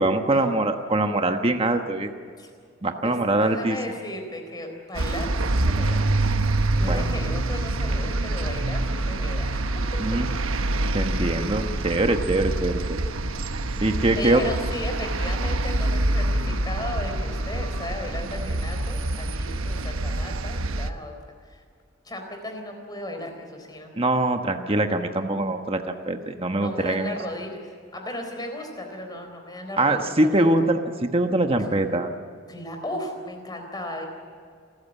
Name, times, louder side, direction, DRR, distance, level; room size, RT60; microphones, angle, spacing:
voice 1, 0.0-2.1 2.8-3.8 6.8-7.1 10.0-10.3 10.9-13.0 13.8-14.4 23.9-27.2 29.8-32.1, right 2 dB, 30° right, 5 dB, 1.2 m, -23 dB
voice 2, 3.0-6.1 6.8-10.2 14.0-21.1 21.5-21.6 22.0-23.9 26.5-30.5 31.7-31.8 32.5-34.1, left 1 dB, 20° left, 4 dB, 4.0 m, -35 dB
sound 1, 4.9-20.9, right 2 dB, 80° right, 1.1 m, -26 dB
28.5 x 14.5 x 8.4 m, 2.2 s
head